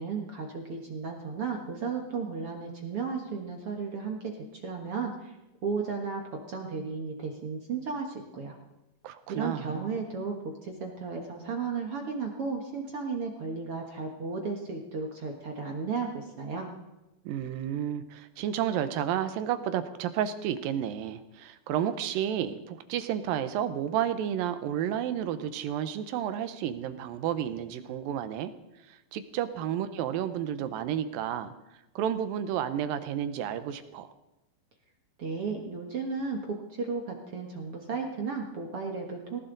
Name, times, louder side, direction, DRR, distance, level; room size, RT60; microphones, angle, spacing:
voice 1, 0.0-5.4 5.6-8.6 9.3-16.7 35.2-39.4, right 4 dB, 50° right, 2 dB, 1.8 m, -34 dB
voice 2, 9.0-10.0 17.3-28.5 28.9-31.5 32.0-34.1, right 10 dB, 75° right, 11 dB, 2.5 m, -31 dB
19.0 x 18.5 x 4.0 m, 0.98 s
omnidirectional pair, 4.3 m